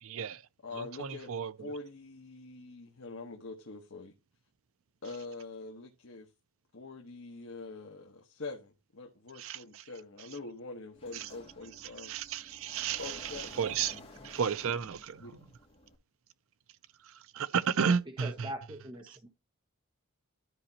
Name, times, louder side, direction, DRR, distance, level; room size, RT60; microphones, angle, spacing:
voice 1, 0.0-0.4 0.8-1.5 9.4-9.6 11.2-11.3 12.0-13.0 13.6-15.2 17.3-18.5, right 6 dB, 65° right, 0.5 m, -32 dB
voice 2, 0.6-1.3 1.6-4.1 5.0-6.3 6.7-12.1 13.0-13.6 15.2-15.3, left 3 dB, 65° left, 1.2 m, -44 dB
Sliding door, 10.9-15.9, left 1 dB, 25° left, 2.0 m, -52 dB
voice 3, 17.8-19.3, right 1 dB, 20° right, 1.1 m, -43 dB
13.0 x 5.1 x 2.8 m
head